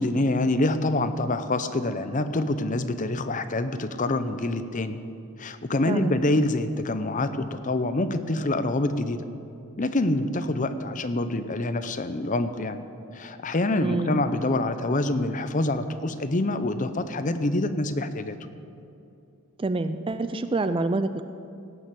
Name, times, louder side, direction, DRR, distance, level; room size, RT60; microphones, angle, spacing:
voice 1, 0.0-5.0 5.4-9.2 9.8-12.8 13.1-18.4, left 2 dB, 35° left, 10 dB, 0.6 m, -26 dB
voice 2, 13.8-14.2 19.6-21.2, right 2 dB, 25° right, 11 dB, 0.4 m, -27 dB
17.5 x 6.6 x 8.5 m, 2.7 s
head